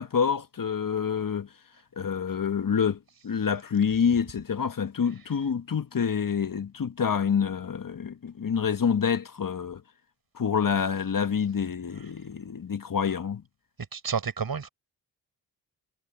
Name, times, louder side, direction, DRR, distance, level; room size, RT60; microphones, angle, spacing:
voice 1, 0.0-1.5 2.0-9.8 10.3-13.4, left 7 dB, 45° left, 1.7 m, -27 dB
voice 2, 13.9-14.7, right 6 dB, 50° right, 6.1 m, -30 dB
supercardioid pair, 45°, 45 cm